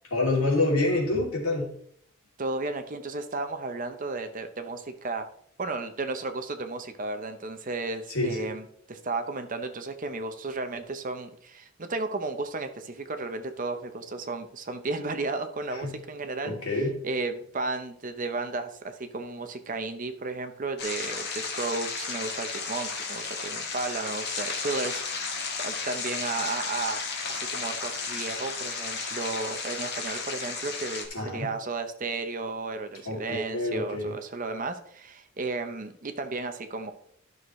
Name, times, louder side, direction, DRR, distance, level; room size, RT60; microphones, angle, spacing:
voice 1, 0.1-1.7 8.1-8.5 15.7-15.9 16.4-17.0 31.1-31.4 33.1-34.2, left 2 dB, 80° left, -2 dB, 2.9 m, -27 dB
voice 2, 2.4-5.2 5.6-25.3 25.6-27.0 27.3-36.9, right 3 dB, 40° right, 8 dB, 0.7 m, -34 dB
sound 1, 20.8-31.1, left 4 dB, 50° left, 1.6 m, -33 dB
12.0 x 6.3 x 3.2 m, 0.65 s
head